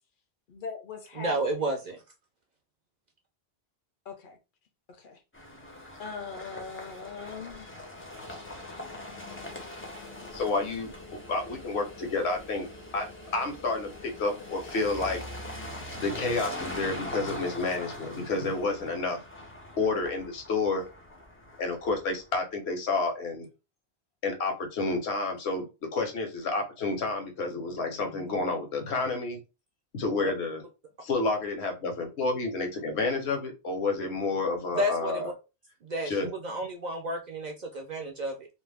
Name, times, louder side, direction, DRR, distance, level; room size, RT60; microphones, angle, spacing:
voice 1, 0.5-1.5 4.1-4.4 4.9-5.2 6.0-7.8, left 4 dB, 60° left, 0.7 m, -40 dB
voice 2, 1.2-2.0 34.8-35.3 35.8-38.5, right 1 dB, 55° right, 0.5 m, -31 dB
sound 1, 5.3-22.3, left 1 dB, 20° left, 0.3 m, -42 dB
voice 3, 10.3-10.9 11.3-12.7 12.9-13.1 13.3-15.2 16.0-19.2 19.8-20.9 21.6-23.5 24.2-29.4 29.9-30.6 31.0-35.3 36.1-36.3, left 3 dB, 80° left, 1.0 m, -30 dB
2.5 x 2.1 x 3.3 m
omnidirectional pair, 1.1 m